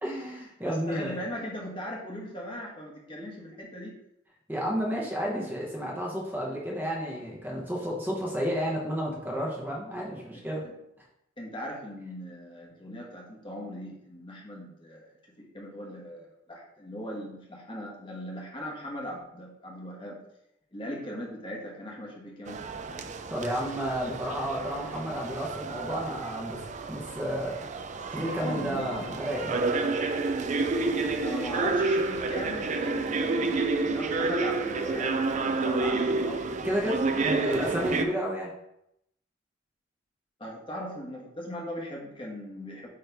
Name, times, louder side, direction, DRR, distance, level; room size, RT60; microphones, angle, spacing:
voice 1, 0.0-1.2 4.5-10.7 23.3-26.6 26.9-27.5 28.1-29.6 36.6-38.5, equal, 10° right, -3 dB, 1.0 m, -31 dB
voice 2, 0.6-3.9 10.3-10.7 11.4-20.2 20.7-22.6 28.0-29.1 31.2-36.4 37.2-37.4 40.4-42.9, equal, 25° left, -2 dB, 1.2 m, -39 dB
sound 1, 22.5-38.1, right 3 dB, 35° right, 0.4 m, -30 dB
8.6 x 3.2 x 3.4 m, 0.81 s
head